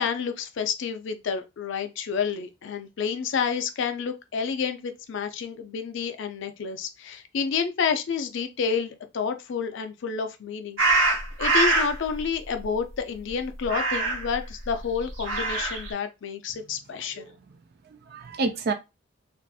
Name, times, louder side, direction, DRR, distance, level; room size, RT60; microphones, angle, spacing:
voice 1, 0.0-11.1 11.4-17.3, left 6 dB, 60° left, 0.4 m, -29 dB
sound 1, 10.8-11.9 13.6-14.3 15.1-15.9, right 2 dB, 75° right, 1.0 m, -23 dB
voice 2, 17.1-17.6 17.9-18.7, right 3 dB, 50° right, 0.4 m, -30 dB
2.6 x 2.5 x 2.3 m
head